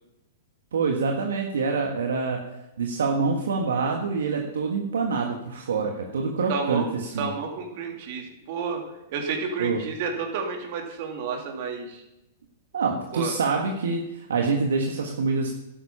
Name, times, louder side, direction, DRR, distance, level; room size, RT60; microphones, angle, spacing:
voice 1, 0.7-2.4 2.8-7.3 9.6-9.8 12.7-15.5, right 4 dB, 80° right, 1 dB, 1.5 m, -26 dB
voice 2, 6.5-6.9 7.2-8.8 9.1-12.0 13.1-13.3, right 5 dB, 55° right, 2 dB, 3.1 m, -30 dB
11.5 x 9.2 x 5.7 m, 0.90 s
hypercardioid pair, 115°, 0 cm